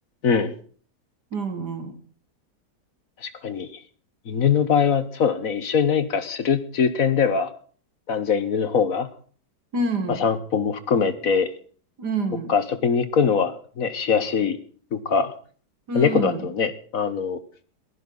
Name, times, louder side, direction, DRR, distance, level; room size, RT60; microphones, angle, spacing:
voice 1, 0.2-0.5 3.2-3.8 4.2-7.5 8.1-9.1 10.1-11.5 12.5-14.6 14.9-15.3 15.9-17.4, left 6 dB, 55° left, 12 dB, 1.6 m, -22 dB
voice 2, 1.3-2.0 9.7-10.3 12.0-12.5 15.9-16.4, right 2 dB, 70° right, 7 dB, 2.3 m, -27 dB
22.0 x 15.0 x 4.0 m, 0.44 s
omnidirectional pair, 1.8 m